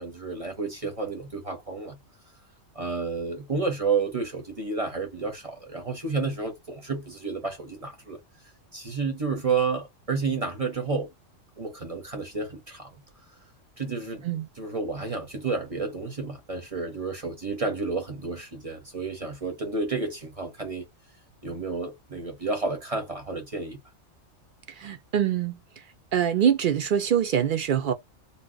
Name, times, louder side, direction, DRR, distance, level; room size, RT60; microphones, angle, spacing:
voice 1, 0.0-2.0 2.7-8.2 8.7-11.1 11.6-13.0 13.8-14.2 14.6-20.8 21.4-23.8, right 4 dB, 35° right, 0.7 m, -30 dB
voice 2, 24.8-25.6 26.1-27.9, right 9 dB, 65° right, 0.5 m, -24 dB
2.7 x 2.2 x 3.8 m
omnidirectional pair, 1.4 m